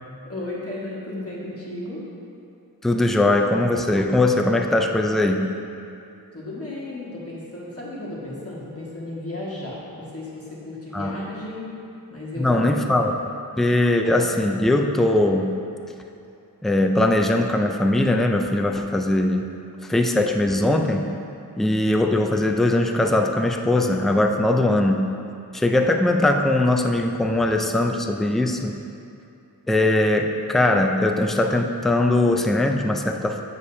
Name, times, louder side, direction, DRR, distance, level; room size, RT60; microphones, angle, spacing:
voice 1, 0.2-2.1 6.3-11.7 12.1-12.8, left 1 dB, 35° left, -7 dB, 1.5 m, -34 dB
voice 2, 2.8-5.5 10.9-11.1 12.4-13.1 13.6-15.5 16.6-19.5 19.8-21.1 21.6-25.1 25.5-28.8 29.7-33.4, left 1 dB, ahead, 3 dB, 0.3 m, -20 dB
7.4 x 6.5 x 2.7 m, 2.7 s
wide cardioid pair, 70°, 40 cm